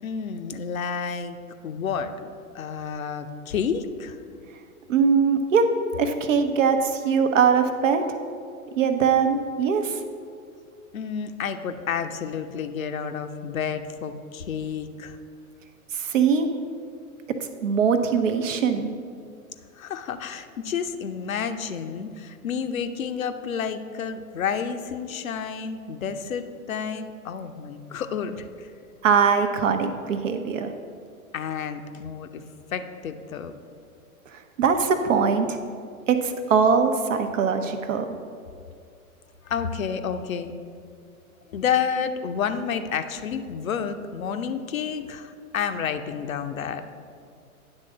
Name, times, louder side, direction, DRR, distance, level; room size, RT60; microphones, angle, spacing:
voice 1, 0.0-1.4 1.6-4.5 10.9-15.2 19.7-28.7 31.3-32.4 32.7-33.5 39.4-40.5 41.5-46.8, left 7 dB, 65° left, 8 dB, 0.7 m, -30 dB
voice 2, 4.9-5.7 6.0-8.0 8.7-10.0 15.9-16.5 17.6-19.0 29.0-30.7 34.3-35.6 36.1-38.1, right 6 dB, 60° right, 7 dB, 0.8 m, -21 dB
9.7 x 3.7 x 6.2 m, 2.3 s
figure-of-eight pair, 105°, 44 cm